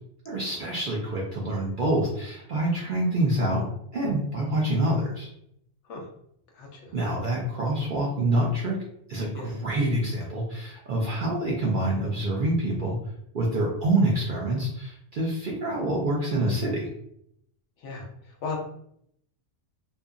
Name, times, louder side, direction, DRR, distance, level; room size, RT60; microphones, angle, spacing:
voice 1, 0.3-3.7 3.9-5.3 6.9-8.8 9.1-13.0 13.3-16.9, right 1 dB, 60° right, -3 dB, 0.5 m, -26 dB
voice 2, 5.9-6.1 6.6-6.8 9.3-9.5 17.8-18.1 18.4-18.6, left 4 dB, 70° left, 2 dB, 0.9 m, -34 dB
2.7 x 2.4 x 2.4 m, 0.73 s
omnidirectional pair, 1.3 m